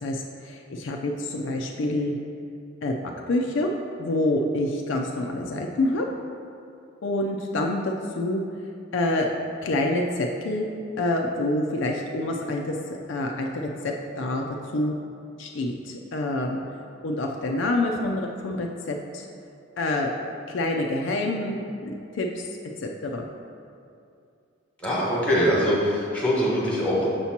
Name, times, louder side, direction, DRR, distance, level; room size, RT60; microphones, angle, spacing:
voice 1, 0.0-2.2 2.8-3.7 4.0-6.1 7.0-8.4 8.9-9.3 9.6-10.7 11.0-14.4 14.7-14.9 15.4-16.6 17.0-19.3 19.8-20.1 20.5-23.3, left 1 dB, 65° left, 1 dB, 0.4 m, -27 dB
voice 2, 24.8-27.1, equal, 5° left, -6 dB, 1.2 m, -23 dB
6.7 x 2.8 x 5.8 m, 2.5 s
head